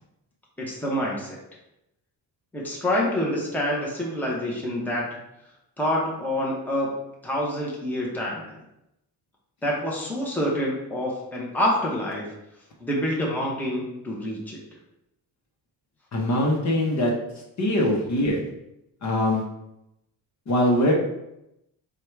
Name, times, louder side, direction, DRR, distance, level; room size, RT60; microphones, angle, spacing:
voice 1, 0.6-1.4 2.5-5.1 5.8-6.9 7.2-8.6 9.6-12.3 12.8-14.6, left 1 dB, 5° left, -4 dB, 0.9 m, -27 dB
voice 2, 16.1-17.1 17.6-18.4 19.0-19.4 20.5-20.9, left 1 dB, 45° left, -1 dB, 1.0 m, -22 dB
4.7 x 2.4 x 4.5 m, 0.85 s
cardioid pair, 140°, 39 cm